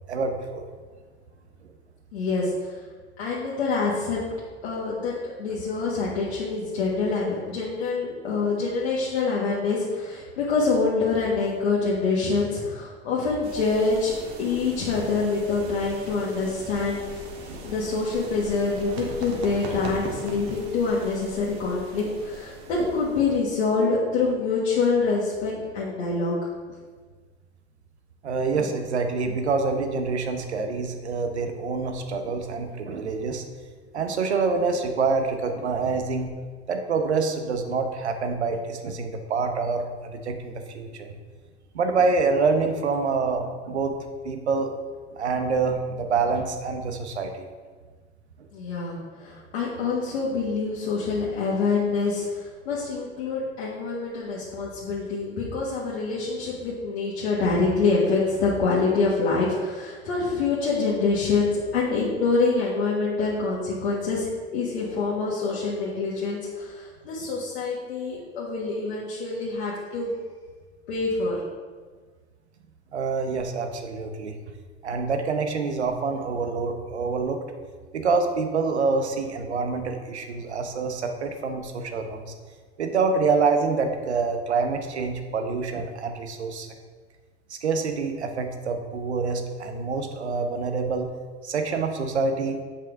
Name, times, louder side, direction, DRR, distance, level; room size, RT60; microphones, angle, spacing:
voice 1, 0.1-0.6 17.5-17.6 22.8-22.9 23.8-23.9 28.2-33.4 33.9-36.3 36.7-41.1 41.7-44.0 44.2-44.7 45.1-47.4 72.9-74.3 74.8-77.4 77.9-82.3 82.8-86.7 87.5-91.1 91.4-92.6, right 4 dB, 80° right, 5 dB, 0.9 m, -26 dB
voice 2, 2.1-2.7 3.2-4.2 4.6-5.1 5.4-17.2 17.6-26.5 48.5-70.1 70.9-71.4, left 4 dB, 70° left, -6 dB, 1.5 m, -26 dB
sound 1, 13.4-23.8, right 2 dB, 60° right, 1.6 m, -39 dB
7.7 x 5.6 x 3.5 m, 1.5 s
figure-of-eight pair, 75°, 33 cm